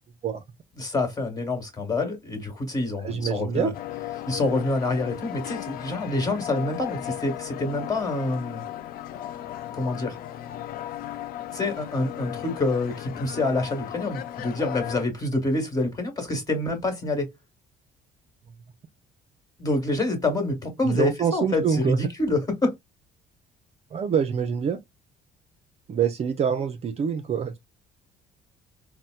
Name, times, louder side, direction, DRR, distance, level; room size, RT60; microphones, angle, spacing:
voice 1, 0.8-3.7 4.3-8.6 9.7-10.2 11.5-17.3 19.6-22.7, left 2 dB, 20° left, 1.4 m, -27 dB
voice 2, 3.0-3.7 20.8-22.1 23.9-24.8 25.9-27.6, right 7 dB, 40° right, 0.5 m, -25 dB
sound 1, 3.7-15.0, left 12 dB, 60° left, 0.4 m, -36 dB
4.1 x 2.1 x 2.2 m
cardioid pair, 110°, 17 cm